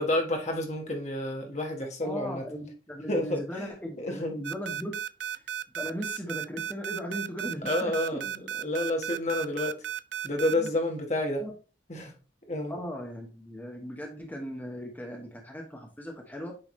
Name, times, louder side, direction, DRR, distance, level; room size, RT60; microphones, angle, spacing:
voice 1, 0.0-2.4 3.1-3.7 4.0-4.4 7.6-9.8 10.2-11.4 11.9-12.1 12.5-12.8, left 1 dB, 40° left, 1.4 m, -30 dB
voice 2, 2.0-5.0 5.2-5.3 5.7-8.2 10.6-10.7 11.4-11.5 12.7-16.5, equal, 10° left, 1.1 m, -38 dB
sound 1, 4.4-10.7, right 10 dB, 90° right, 0.4 m, -34 dB
8.7 x 3.6 x 3.2 m
head